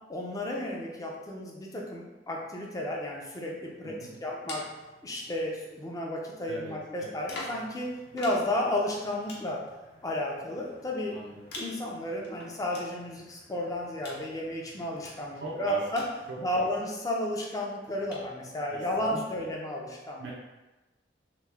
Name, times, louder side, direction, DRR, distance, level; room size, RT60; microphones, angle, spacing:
voice 1, 0.1-3.9 4.2-4.7 5.0-9.6 10.0-11.2 11.5-16.0 16.4-20.3, left 1 dB, 20° left, -1 dB, 0.4 m, -33 dB
sound 1, 2.8-6.0 6.9-16.9 17.8-18.3, left 2 dB, 60° left, 0.7 m, -48 dB
voice 2, 3.8-4.2 6.5-6.7 7.0-7.1 11.1-11.4 15.4-15.8 16.3-16.7 18.7-19.4 20.2-20.3, right 4 dB, 85° right, -4 dB, 0.5 m, -39 dB
2.9 x 2.0 x 3.3 m, 1.1 s
head